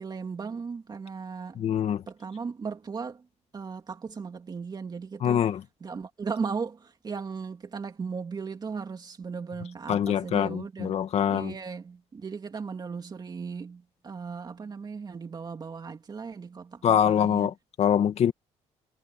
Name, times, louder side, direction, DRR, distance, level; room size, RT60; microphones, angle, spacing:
voice 1, 0.0-1.7 2.1-3.2 3.5-5.4 5.8-11.0 11.3-17.5, right 5 dB, 35° right, 2.6 m, -37 dB
voice 2, 1.6-2.0 5.2-5.6 9.9-11.5 16.8-18.3, left 9 dB, 60° left, 2.0 m, -24 dB
cardioid pair, 110°, 12 cm